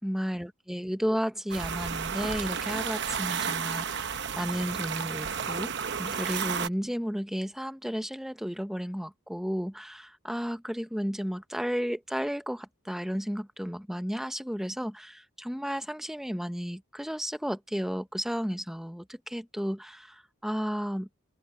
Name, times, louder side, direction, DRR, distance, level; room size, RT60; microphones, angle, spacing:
voice 1, 0.0-5.7 6.0-21.2, equal, ahead, 0.8 m, -33 dB
sound 1, 1.5-6.7, right 6 dB, 55° right, 0.9 m, -32 dB
head